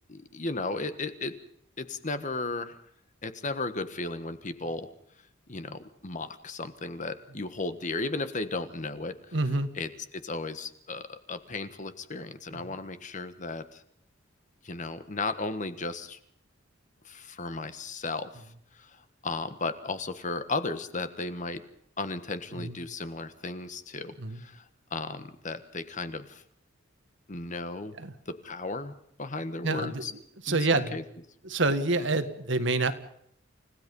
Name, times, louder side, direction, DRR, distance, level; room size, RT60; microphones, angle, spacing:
voice 1, 0.1-1.3 1.8-2.8 3.2-4.9 5.5-9.3 9.8-13.8 14.6-16.2 17.0-21.6 22.0-24.6 24.9-26.4 27.3-28.0 28.3-28.9 29.2-30.1 30.5-31.0, left 3 dB, 40° left, 10 dB, 1.4 m, -35 dB
voice 2, 9.3-9.7 12.5-12.8 22.5-22.8 24.2-24.4 28.0-28.1 29.6-31.0 31.4-32.9, right 2 dB, 65° right, 10 dB, 1.7 m, -28 dB
29.5 x 16.5 x 5.5 m, 0.70 s
head